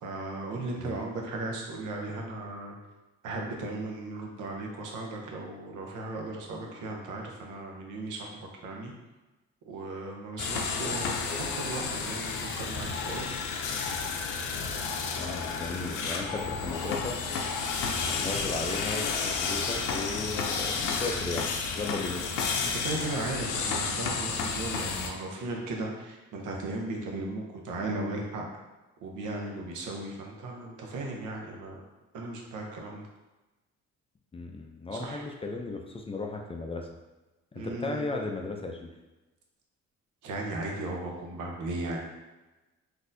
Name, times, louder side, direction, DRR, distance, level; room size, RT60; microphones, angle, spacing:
voice 1, 0.0-2.8 3.2-8.9 9.7-13.3 22.6-28.4 29.0-31.8 32.1-33.1 34.9-35.2 37.5-38.0 40.2-42.0, right 2 dB, 85° right, 0 dB, 0.8 m, -36 dB
sound 1, 10.4-25.1, left 5 dB, 85° left, 0.5 m, -31 dB
voice 2, 15.2-17.2 18.1-21.5 21.7-22.2 34.3-36.9 37.5-38.9, left 3 dB, 20° left, 2 dB, 0.3 m, -35 dB
3.9 x 2.7 x 2.6 m, 1.1 s
cardioid pair, 90°, 30 cm